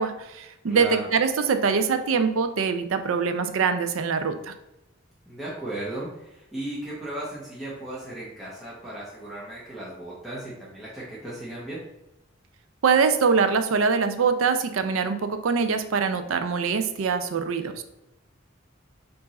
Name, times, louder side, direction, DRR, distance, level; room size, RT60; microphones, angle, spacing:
voice 1, 0.0-4.5 12.8-17.8, right 5 dB, 85° right, 9 dB, 0.4 m, -23 dB
voice 2, 0.7-1.1 5.3-11.8, right 1 dB, ahead, -9 dB, 0.9 m, -36 dB
4.6 x 2.5 x 4.0 m, 0.87 s
head